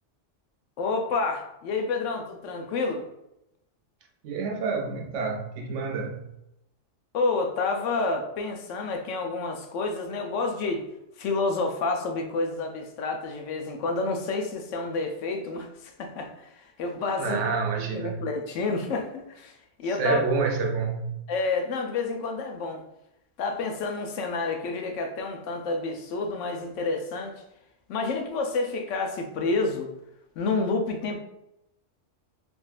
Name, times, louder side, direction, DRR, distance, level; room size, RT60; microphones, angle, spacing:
voice 1, 0.8-3.0 7.1-10.8 11.2-15.7 16.0-17.6 17.8-19.5 19.8-20.2 21.3-22.8 23.4-27.3 27.9-29.9 30.4-31.2, left 3 dB, 80° left, 3 dB, 0.9 m, -29 dB
voice 2, 4.2-6.3 17.2-18.2 19.9-21.2, right 4 dB, 75° right, 2 dB, 0.9 m, -28 dB
3.6 x 2.5 x 2.4 m, 0.85 s
omnidirectional pair, 1.3 m